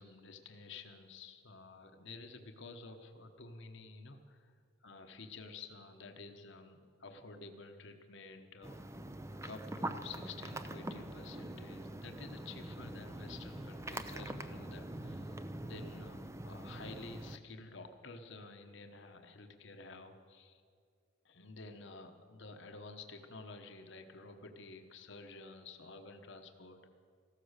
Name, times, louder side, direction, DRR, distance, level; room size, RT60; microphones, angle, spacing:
voice 1, 0.0-4.5 4.8-8.8 9.4-20.6 21.2-26.9, left 3 dB, 60° left, 6 dB, 1.1 m, -51 dB
sound 1, 8.6-17.4, right 1 dB, 15° right, 0.5 m, -44 dB
15.5 x 13.5 x 6.5 m, 2.2 s
head